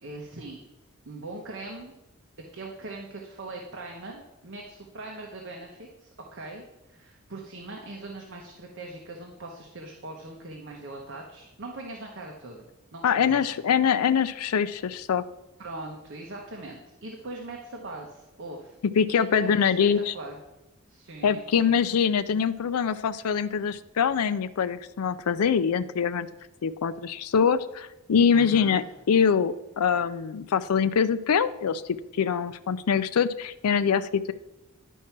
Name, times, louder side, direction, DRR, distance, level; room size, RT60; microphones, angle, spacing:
voice 1, 0.0-0.6 1.0-1.9 2.5-12.6 12.9-13.5 15.6-18.8 19.1-19.9 20.1-20.4 20.9-21.7 28.3-28.8, right 2 dB, 55° right, 0 dB, 1.1 m, -41 dB
voice 2, 13.0-15.2 19.0-20.1 21.2-26.3 26.6-31.8 32.2-34.3, left 7 dB, 90° left, 12 dB, 0.4 m, -24 dB
11.0 x 4.6 x 5.9 m, 0.99 s
head